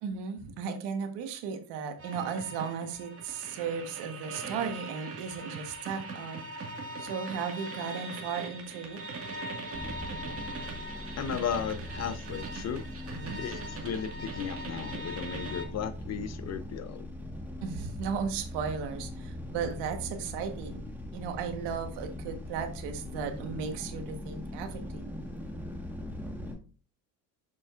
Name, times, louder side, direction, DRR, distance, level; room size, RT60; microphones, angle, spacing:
voice 1, 0.0-6.4 7.0-9.0 13.1-13.4 17.6-20.8 21.1-25.2, right 6 dB, 75° right, 6 dB, 1.4 m, -35 dB
sound 1, 2.0-15.6, right 2 dB, 35° right, 1.8 m, -41 dB
sound 2, 9.7-26.5, left 1 dB, 5° right, 1.4 m, -41 dB
voice 2, 11.2-12.9 13.4-17.1, left 8 dB, 40° left, 11 dB, 0.7 m, -35 dB
6.8 x 6.1 x 2.5 m, 0.38 s
cardioid pair, 110°, 41 cm